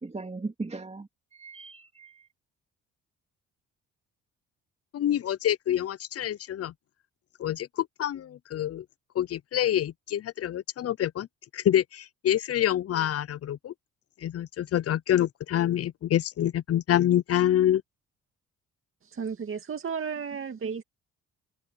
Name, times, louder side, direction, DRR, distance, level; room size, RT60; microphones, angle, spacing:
voice 1, 0.0-2.3, right 3 dB, 20° right, 2.8 m, -38 dB
voice 2, 4.9-6.7 7.4-8.8 9.2-11.3 11.5-13.7 14.2-17.8, left 11 dB, 50° left, 0.6 m, -26 dB
voice 3, 19.0-20.8, right 6 dB, 45° right, 2.3 m, -33 dB
cardioid pair, 90°, 30 cm